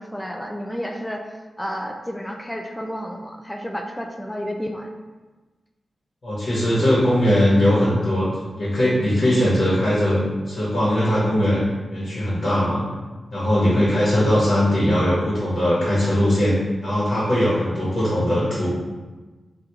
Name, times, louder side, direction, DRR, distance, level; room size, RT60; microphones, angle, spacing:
voice 1, 0.0-4.9 13.7-13.9, equal, 10° left, 3 dB, 0.4 m, -31 dB
voice 2, 6.2-8.3 8.5-11.6 11.9-12.8 13.3-18.8, equal, 60° left, -8 dB, 1.2 m, -20 dB
3.3 x 2.4 x 2.9 m, 1.2 s
cardioid pair, 45°, 0 cm